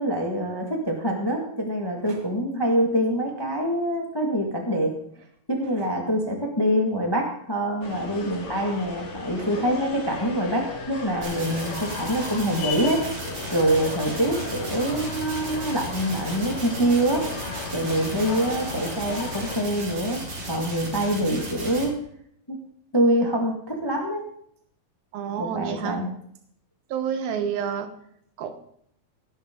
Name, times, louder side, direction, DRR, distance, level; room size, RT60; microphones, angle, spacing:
voice 1, 0.0-13.1 13.5-17.3 17.7-20.2 20.5-22.0 22.5-22.6 22.9-24.3 25.4-26.1, right 1 dB, 15° left, 2 dB, 0.7 m, -25 dB
sound 1, 7.8-19.6, left 4 dB, 55° left, 3.4 m, -36 dB
sound 2, 11.2-21.9, right 1 dB, 60° right, 4.8 m, -35 dB
voice 2, 25.1-26.0 26.9-27.9 28.4-28.5, right 8 dB, 85° right, 7 dB, 3.1 m, -28 dB
18.5 x 11.0 x 3.9 m, 0.67 s
omnidirectional pair, 4.1 m